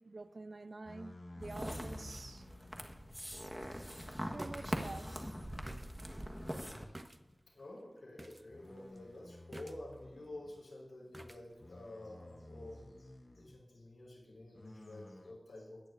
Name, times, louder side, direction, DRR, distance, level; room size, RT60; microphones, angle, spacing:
voice 1, 0.0-2.5 4.3-5.2, right 3 dB, 55° right, 0.5 m, -48 dB
sound 1, 0.8-3.2 4.2-6.7 7.1-7.4 8.5-10.6 11.6-13.6 14.5-15.3, left 1 dB, 40° left, 1.0 m, -53 dB
sound 2, 1.4-6.8, equal, ahead, 1.4 m, -43 dB
sound 3, 3.2-3.3 4.4-4.7 5.0-5.1 5.4-7.2 7.6-7.7 8.2-8.4 8.7-9.0 9.5-10.1 11.1-11.4 11.8-11.9, right 1 dB, 25° right, 0.8 m, -48 dB
voice 2, 3.7-4.3 7.5-13.1 13.4-15.9, left 1 dB, 80° left, 4.5 m, -50 dB
21.0 x 10.0 x 2.6 m
wide cardioid pair, 50°, 0 cm